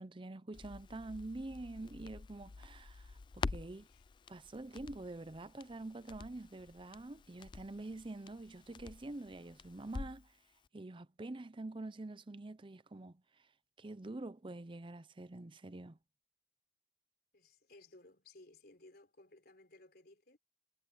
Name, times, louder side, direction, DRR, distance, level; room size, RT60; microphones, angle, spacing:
voice 1, 0.0-3.9 4.3-10.4 10.7-13.5 13.8-16.0, right 2 dB, 30° right, 0.6 m, -46 dB
Crackle, 0.5-10.3 10.6-10.7, left 4 dB, 25° left, 0.3 m, -47 dB
voice 2, 3.7-4.0 17.3-20.4, left 2 dB, 60° left, 3.8 m, -60 dB
head